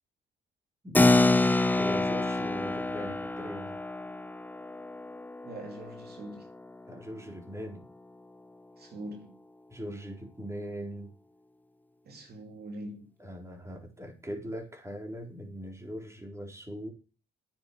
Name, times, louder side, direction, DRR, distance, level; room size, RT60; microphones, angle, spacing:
Keyboard (musical), 0.9-7.0, left 2 dB, 10° left, 0.6 m, -27 dB
voice 1, 1.6-3.8 6.9-7.9 9.7-11.1 13.2-16.9, equal, 15° right, 4.2 m, -40 dB
voice 2, 5.4-6.5 8.8-9.4 12.0-13.1, right 1 dB, 50° right, 2.8 m, -43 dB
9.7 x 7.6 x 8.0 m
cardioid pair, 90°, 20 cm